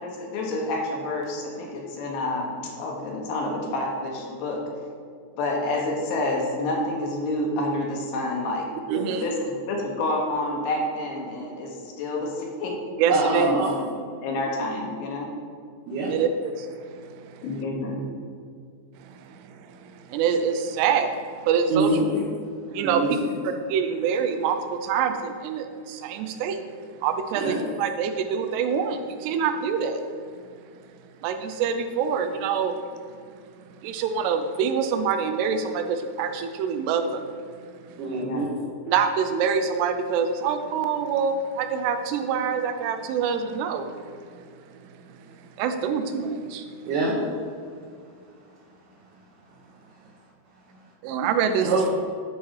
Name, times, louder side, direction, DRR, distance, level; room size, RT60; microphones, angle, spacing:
voice 1, 0.0-4.6 5.4-8.7 9.2-12.7 13.3-13.9 14.2-15.3 17.4-18.0 38.2-38.5, left 2 dB, 80° left, -1 dB, 3.2 m, -28 dB
voice 2, 8.9-9.2 13.0-13.5 16.1-17.6 19.0-22.0 22.7-23.0 23.4-26.6 26.9-30.0 31.2-33.3 33.7-38.1 38.9-46.9 51.0-51.8, right 6 dB, 85° right, 7 dB, 2.7 m, -26 dB
voice 3, 13.1-13.8 15.9-16.1 21.7-22.2 22.8-23.4 27.4-27.6 38.0-38.5 46.9-47.3 51.6-51.9, right 2 dB, 70° right, -6 dB, 2.2 m, -25 dB
11.0 x 4.6 x 4.7 m, 2.2 s
omnidirectional pair, 4.9 m